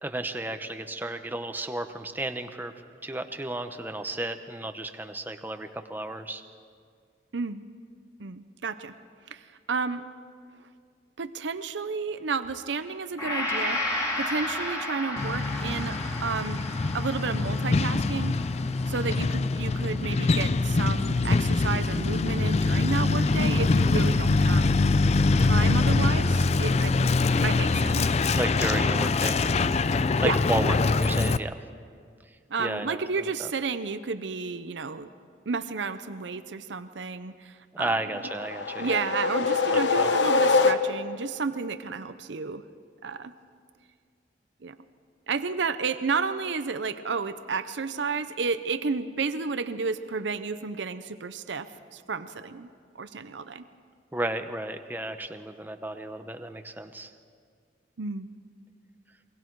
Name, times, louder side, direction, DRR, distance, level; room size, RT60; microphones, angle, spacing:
voice 1, 0.0-2.7 3.0-6.4 28.3-29.4 30.2-31.6 32.3-33.0 33.4-33.5 37.7-39.0 39.7-40.1 54.1-57.1, right 1 dB, 10° right, 7 dB, 0.8 m, -33 dB
voice 2, 7.3-7.6 8.2-8.9 9.3-10.0 11.2-13.8 14.2-16.6 16.9-18.4 18.9-24.7 25.4-28.1 30.2-30.4 32.5-35.1 35.5-37.9 38.8-42.6 43.0-43.3 44.6-44.8 45.3-52.7 52.9-53.6 58.0-58.3, right 4 dB, 80° right, 11 dB, 0.7 m, -31 dB
Gong, 13.2-21.2, left 1 dB, 20° left, 3.2 m, -34 dB
Truck, 15.2-31.4, left 3 dB, 35° left, 0.4 m, -24 dB
sound 1, 38.2-41.3, left 4 dB, 75° left, 0.9 m, -24 dB
28.5 x 22.0 x 4.7 m, 2.1 s
head